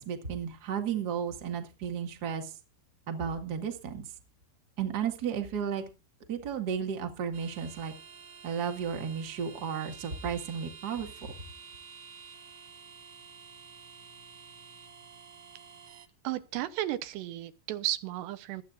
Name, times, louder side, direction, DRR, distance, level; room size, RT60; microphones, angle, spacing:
voice 1, 0.0-2.5 3.1-4.0 4.8-5.8 6.3-7.9 8.4-11.3, right 7 dB, 35° right, 1.7 m, -33 dB
sound 1, 7.3-16.1, right 6 dB, 60° right, 1.8 m, -50 dB
voice 2, 16.2-18.6, right 15 dB, 85° right, 3.1 m, -34 dB
25.0 x 8.9 x 2.6 m
omnidirectional pair, 4.8 m